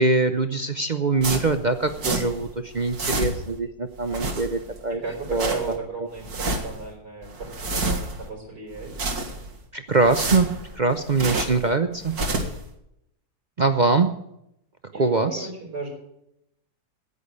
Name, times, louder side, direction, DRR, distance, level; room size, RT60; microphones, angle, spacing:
voice 1, 0.0-5.0 5.3-5.5 9.7-10.5 10.7-12.1 13.6-14.1 15.0-15.5, right 3 dB, 45° right, 8 dB, 0.6 m, -23 dB
sound 1, 1.2-2.5 2.7-3.6 4.0-4.8 5.1-5.8 6.2-6.8 7.2-8.3 8.7-9.6 9.9-11.7 12.0-12.6, right 2 dB, 65° right, 2.3 m, -29 dB
voice 2, 4.9-8.9 14.9-15.9, right 4 dB, 90° right, -1 dB, 5.5 m, -35 dB
10.5 x 8.7 x 9.5 m, 0.80 s
omnidirectional pair, 1.7 m